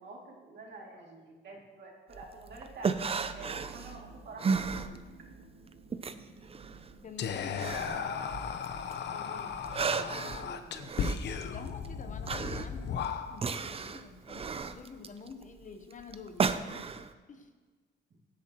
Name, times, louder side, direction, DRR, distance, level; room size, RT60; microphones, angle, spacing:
voice 1, 0.0-4.5 4.9-5.1 7.8-8.3 9.1-10.9, right 2 dB, 60° right, -2 dB, 2.6 m, -48 dB
sound 1, 2.1-5.4 5.7-9.0 9.4-17.1, right 5 dB, 30° right, 0.6 m, -34 dB
sound 2, 2.9-8.2, right 3 dB, 80° right, 1.7 m, -55 dB
voice 2, 7.0-8.0 11.5-16.9 17.3-17.5, left 5 dB, 40° left, 7 dB, 1.0 m, -48 dB
Whispering, 7.2-13.6, left 7 dB, 60° left, 0.8 m, -36 dB
16.0 x 8.3 x 3.0 m, 1.4 s
cardioid pair, 90°, 20 cm